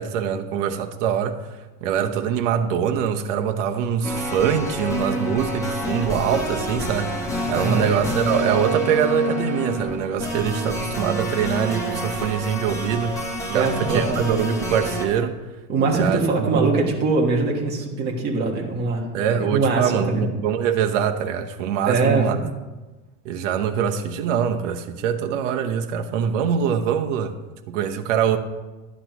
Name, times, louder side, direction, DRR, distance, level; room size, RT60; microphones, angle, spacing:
voice 1, 0.0-1.4 1.8-13.2 13.5-15.4 15.9-16.8 19.1-22.4 23.2-27.4 27.7-28.4, right 8 dB, 60° right, 4 dB, 0.9 m, -23 dB
sound 1, 4.0-15.1, equal, 10° left, 0.8 m, -28 dB
voice 2, 7.5-7.9 13.5-14.2 15.7-20.2 21.9-22.3, right 3 dB, 25° right, 0 dB, 1.5 m, -22 dB
12.0 x 9.8 x 3.0 m, 1.2 s
supercardioid pair, 175°, 41 cm